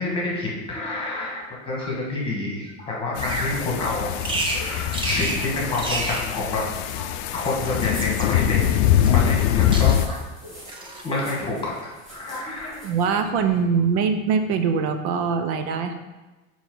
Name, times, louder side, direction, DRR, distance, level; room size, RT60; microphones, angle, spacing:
voice 1, 0.0-6.6 7.0-8.6 9.0-10.6 10.8-12.9, left 2 dB, 15° left, -3 dB, 1.5 m, -28 dB
sound 1, 3.2-10.1, left 11 dB, 70° left, 0.4 m, -23 dB
Bird vocalization bird call bird song, 3.2-3.5 4.2-4.6 4.9-5.4 5.7-6.3 7.3-8.3 9.0-9.5 9.7-10.2 10.7-11.1, right 2 dB, 15° right, 0.6 m, -29 dB
sound 2, 4.2-13.9, equal, ahead, 2.4 m, -46 dB
voice 2, 12.8-15.9, right 6 dB, 75° right, 8 dB, 0.7 m, -22 dB
8.3 x 3.2 x 5.4 m, 1.2 s
cardioid pair, 175°, 32 cm